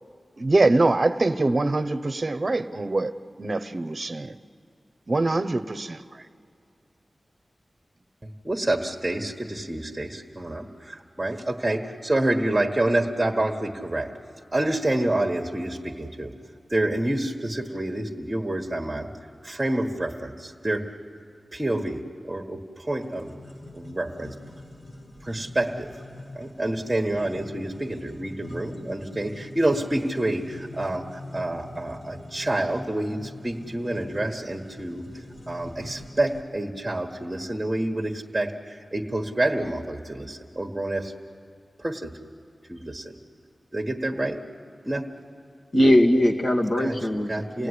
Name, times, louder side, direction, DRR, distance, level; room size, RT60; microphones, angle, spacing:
voice 1, 0.4-3.1 3.4-4.3 5.1-6.0, right 2 dB, 45° right, 0.9 m, -23 dB
voice 2, 8.2-14.1 14.5-16.3 16.7-19.1 19.4-20.9 21.5-23.3 23.7-24.3 25.2-25.9 26.3-35.1 35.5-41.1 41.8-42.1 42.7-43.1 43.7-44.4 44.8-45.1 46.8-47.0 47.3-47.7, right 1 dB, 20° right, 1.5 m, -28 dB
sound 1, 23.0-36.4, left 1 dB, 80° left, 2.7 m, -44 dB
voice 3, 45.7-47.7, equal, 65° left, 2.2 m, -20 dB
28.5 x 17.5 x 9.9 m
wide cardioid pair, 85°, 0 cm